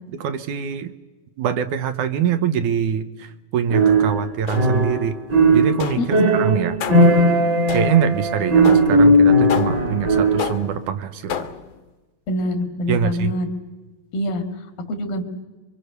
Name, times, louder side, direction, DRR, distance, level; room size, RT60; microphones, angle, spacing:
voice 1, 0.1-0.9 1.4-5.2 5.5-6.8 7.7-11.5 12.9-13.3, right 8 dB, 70° right, 10 dB, 2.3 m, -24 dB
sound 1, 3.7-5.0 5.3-10.6, right 1 dB, 35° right, 2.2 m, -17 dB
sound 2, 4.5-5.0 5.8-6.2 6.8-7.2 7.7-8.2 8.7-9.1 9.5-10.0 10.4-10.9 11.3-11.8, left 9 dB, 70° left, 2.4 m, -30 dB
voice 2, 6.0-6.3 12.3-13.5 14.1-14.4 14.9-15.2, left 1 dB, 85° left, 6 dB, 4.0 m, -24 dB
27.5 x 24.0 x 6.8 m, 1.2 s
omnidirectional pair, 3.9 m